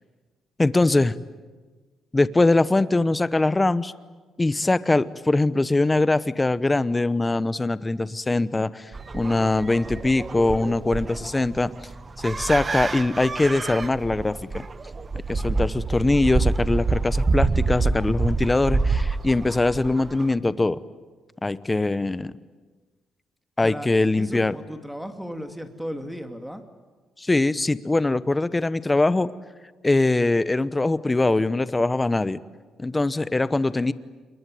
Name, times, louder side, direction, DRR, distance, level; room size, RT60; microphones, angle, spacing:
voice 1, 0.6-1.1 2.1-3.9 4.4-11.7 12.2-14.6 15.3-20.8 21.4-22.3 23.6-24.5 27.2-29.3 29.8-32.4 32.8-33.9, left 2 dB, 20° left, 15 dB, 0.9 m, -22 dB
sound 1, 8.9-20.3, right 3 dB, 30° right, 1.2 m, -27 dB
voice 2, 24.2-26.6, equal, ahead, 6 dB, 2.6 m, -35 dB
27.5 x 22.5 x 9.3 m, 1.3 s
cardioid pair, 90°, 0 cm